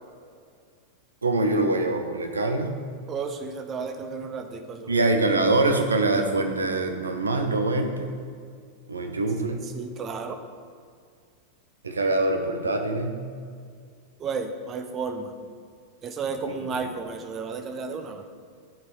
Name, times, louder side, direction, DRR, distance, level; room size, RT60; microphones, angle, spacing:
voice 1, 1.2-2.7 4.9-8.2 8.9-9.7 11.8-13.2 16.5-16.6, right 2 dB, 75° right, 5 dB, 0.8 m, -24 dB
voice 2, 3.1-5.1 9.7-10.4 14.2-15.3 16.0-18.2, right 5 dB, 25° right, 7 dB, 0.7 m, -33 dB
11.0 x 4.7 x 4.2 m, 2.2 s
figure-of-eight pair, 90°, 0 cm